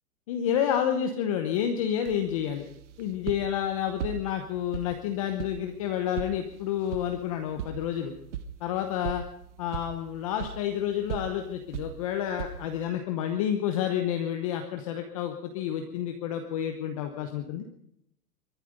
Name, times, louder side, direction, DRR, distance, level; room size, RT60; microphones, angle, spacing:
voice 1, 0.3-2.6 3.0-8.1 8.6-9.2 9.6-17.7, left 9 dB, 20° left, 6 dB, 0.9 m, -29 dB
sound 1, 2.0-12.8, right 8 dB, 50° right, 1.5 m, -40 dB
23.0 x 11.5 x 5.1 m, 0.74 s
hypercardioid pair, 175°, 46 cm